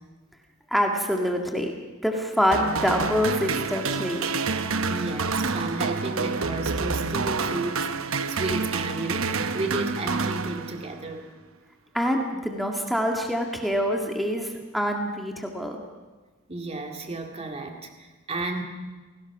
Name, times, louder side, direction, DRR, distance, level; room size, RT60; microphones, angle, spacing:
voice 1, 0.7-1.7 2.0-4.3 11.9-15.8, equal, ahead, 1 dB, 1.9 m, -25 dB
sound 1, 2.5-11.1, right 4 dB, 85° right, 1.0 m, -28 dB
voice 2, 4.9-11.3 16.5-18.6, right 2 dB, 30° right, 3 dB, 2.2 m, -33 dB
28.0 x 18.5 x 6.0 m, 1.3 s
head